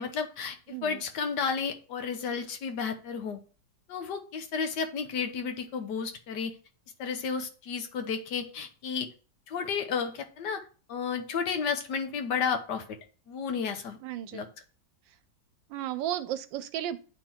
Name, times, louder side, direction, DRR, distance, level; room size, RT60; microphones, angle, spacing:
voice 1, 0.0-0.6 0.8-3.4 3.9-6.5 7.0-9.1 9.5-10.6 10.9-13.0 13.3-14.0 14.3-14.5, left 6 dB, 70° left, 7 dB, 1.5 m, -32 dB
voice 2, 0.7-1.0 14.0-14.4 15.7-17.0, right 11 dB, 85° right, 14 dB, 1.3 m, -34 dB
9.0 x 3.8 x 4.4 m, 0.38 s
omnidirectional pair, 2.0 m